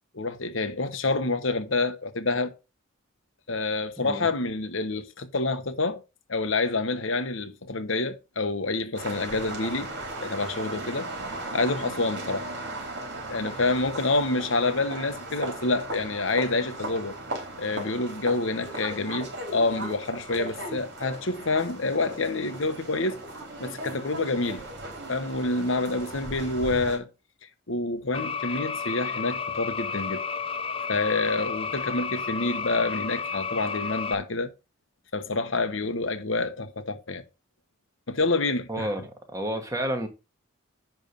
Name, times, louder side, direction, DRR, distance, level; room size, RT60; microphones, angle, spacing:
voice 1, 0.1-2.5 3.5-6.0 6.3-9.9 10.2-11.1 11.5-12.5 13.3-17.2 17.6-23.2 23.6-24.6 25.1-27.1 27.7-30.2 30.9-34.5 35.1-37.2 38.1-38.9, left 3 dB, 65° left, 1.2 m, -27 dB
sound 1, 8.9-27.0, right 2 dB, 55° right, 3.9 m, -37 dB
sound 2, 28.1-34.1, left 5 dB, 25° left, 0.7 m, -32 dB
voice 2, 38.7-40.1, right 1 dB, 15° right, 1.7 m, -30 dB
10.5 x 3.6 x 6.8 m
head